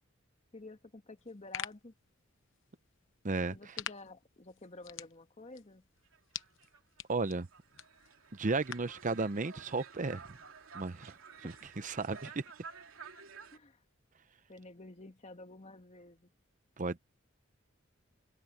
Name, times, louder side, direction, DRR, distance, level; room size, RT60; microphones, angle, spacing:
voice 1, 0.5-1.9 3.5-5.9 11.4-11.5 13.5-13.8 14.5-16.3, left 2 dB, 35° left, 1.6 m, -51 dB
sound 1, 1.2-9.0, left 10 dB, 65° left, 0.9 m, -48 dB
voice 2, 3.2-3.6 7.1-7.5 8.3-10.4 10.7-12.4 16.8-17.0, right 3 dB, 40° right, 0.7 m, -34 dB
sound 2, 6.1-13.6, right 5 dB, 90° right, 3.1 m, -52 dB
open air
head